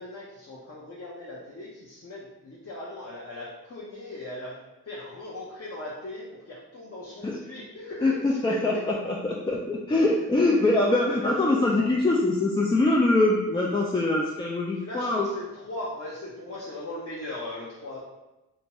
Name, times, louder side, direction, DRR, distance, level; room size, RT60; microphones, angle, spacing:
voice 1, 0.0-4.5 4.9-8.8 11.1-11.3 11.5-11.9 14.8-18.0, left 1 dB, 40° left, -7 dB, 0.8 m, -38 dB
voice 2, 8.0-15.2, left 2 dB, 15° left, -3 dB, 0.3 m, -23 dB
2.6 x 2.2 x 2.9 m, 1.0 s
supercardioid pair, 40°, 38 cm